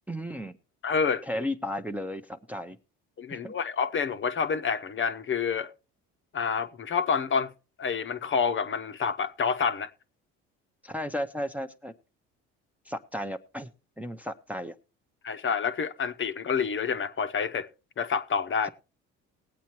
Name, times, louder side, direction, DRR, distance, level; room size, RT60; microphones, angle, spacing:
voice 1, 0.1-0.6 1.3-2.8 3.3-3.5 10.8-11.9 12.9-13.7 14.0-14.7 18.6-18.7, equal, 5° right, 0.6 m, -34 dB
voice 2, 0.8-1.2 3.2-5.7 6.3-7.5 7.8-9.9 15.2-17.7 18.0-18.7, left 6 dB, 40° left, 0.7 m, -28 dB
19.5 x 8.3 x 3.0 m
supercardioid pair, 90°, 31 cm